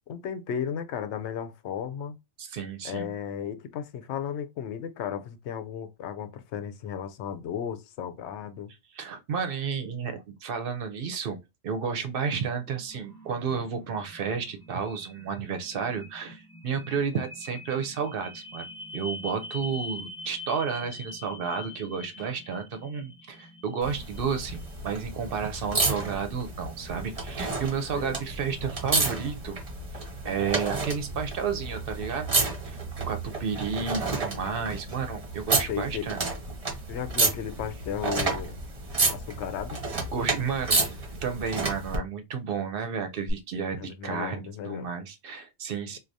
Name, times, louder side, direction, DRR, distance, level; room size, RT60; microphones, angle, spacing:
voice 1, 0.1-2.2 2.8-8.7 27.9-28.2 35.7-36.1 36.9-38.6 39.1-39.8 43.7-44.9, left 8 dB, 80° left, 0.9 m, -34 dB
voice 2, 2.4-3.1 8.9-18.7 18.9-29.6 30.2-32.4 32.6-36.2 40.1-40.8 41.2-46.0, right 6 dB, 60° right, 0.7 m, -32 dB
sound 1, 12.6-30.3, left 2 dB, 5° left, 0.5 m, -45 dB
sound 2, 23.8-42.0 43.3-43.4, right 3 dB, 35° right, 0.9 m, -31 dB
4.6 x 2.3 x 2.6 m
omnidirectional pair, 1.1 m